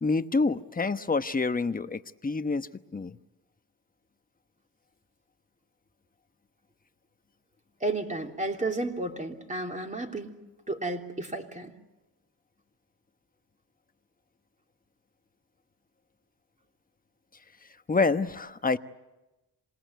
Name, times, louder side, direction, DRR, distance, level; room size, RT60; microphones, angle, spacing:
voice 1, 0.0-3.2 17.9-18.8, left 3 dB, 20° left, 10 dB, 1.1 m, -27 dB
voice 2, 7.8-10.3 10.7-11.7, right 2 dB, 15° right, 3 dB, 3.1 m, -32 dB
27.0 x 19.5 x 9.4 m, 1.0 s
cardioid pair, 80°, 42 cm